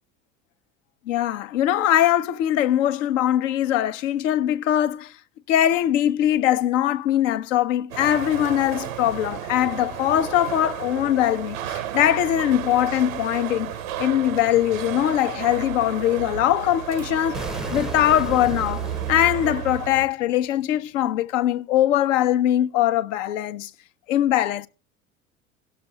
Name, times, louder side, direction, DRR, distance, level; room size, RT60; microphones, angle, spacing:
voice 1, 1.1-5.1 5.5-13.7 14.0-17.4 17.7-23.7 24.1-24.7, left 12 dB, 65° left, 0.9 m, -21 dB
sound 1, 7.9-20.1, right 10 dB, 70° right, 0.9 m, -32 dB
Explosion, 17.3-20.3, equal, ahead, 0.6 m, -35 dB
18.0 x 6.8 x 3.6 m
figure-of-eight pair, 70°, 42 cm